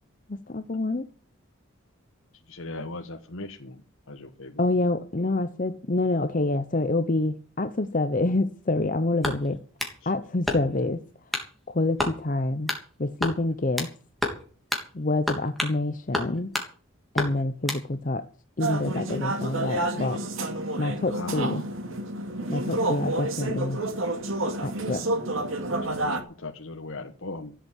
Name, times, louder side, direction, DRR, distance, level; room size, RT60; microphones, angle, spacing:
voice 1, 0.3-1.1 4.6-9.6 10.1-11.0 11.7-12.7 13.0-13.9 14.9-16.5 17.1-18.3 18.6-20.2 20.8-21.6 22.5-23.8 24.6-25.0, left 2 dB, 40° left, 0.7 m, -27 dB
voice 2, 2.5-3.8 4.1-4.6 9.3-9.4 21.1-21.5 26.0-27.5, left 2 dB, 70° left, 1.3 m, -38 dB
sound 1, 9.2-10.0 10.5-10.9 11.3-11.5 12.0-12.2 12.7-12.9 13.2-13.9 14.2-14.4 14.7-14.9 15.3-15.8 16.1-16.7 17.2-17.8, left 1 dB, ahead, 3.2 m, -29 dB
sound 2, 18.6-26.2, right 2 dB, 70° right, 2.3 m, -29 dB
15.5 x 8.1 x 8.4 m
head